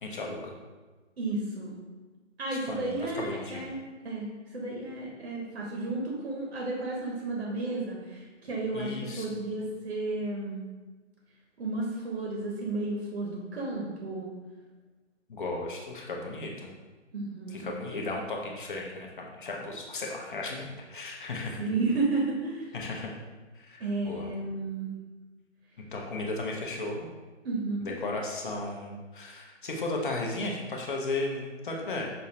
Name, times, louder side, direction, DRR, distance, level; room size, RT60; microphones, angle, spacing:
voice 1, 0.0-0.5 2.7-3.7 8.7-9.4 15.3-16.7 17.5-21.6 22.7-23.1 23.5-24.3 25.9-27.1 27.8-32.0, left 2 dB, 45° left, 0 dB, 0.6 m, -35 dB
voice 2, 1.2-1.8 2.4-10.6 11.6-14.3 17.1-17.7 21.6-22.7 23.8-24.9 27.4-27.9, right 2 dB, 60° right, -3 dB, 0.8 m, -32 dB
5.4 x 2.0 x 2.6 m, 1.3 s
figure-of-eight pair, 145°, 36 cm